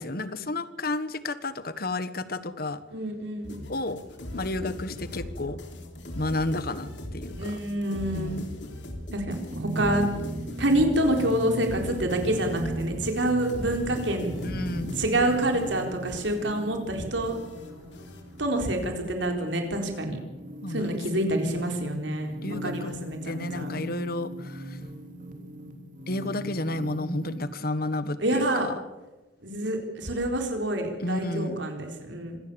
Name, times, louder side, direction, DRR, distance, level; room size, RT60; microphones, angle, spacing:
voice 1, 0.0-2.8 3.7-4.0 4.3-5.6 6.2-7.6 8.1-8.5 14.4-14.9 20.6-20.9 22.4-22.9 23.2-24.8 26.1-28.7 31.0-31.7, left 2 dB, 55° left, 13 dB, 1.4 m, -32 dB
voice 2, 2.9-3.6 7.4-8.4 9.1-10.1 10.6-14.3 15.0-17.3 18.4-20.2 20.7-23.7 28.2-28.7 29.4-32.4, right 1 dB, 75° right, 3 dB, 4.2 m, -27 dB
sound 1, 3.4-18.4, left 1 dB, 70° left, 3.6 m, -40 dB
sound 2, 9.5-27.5, right 1 dB, 45° right, 3.0 m, -38 dB
26.0 x 17.5 x 7.1 m, 1.1 s
head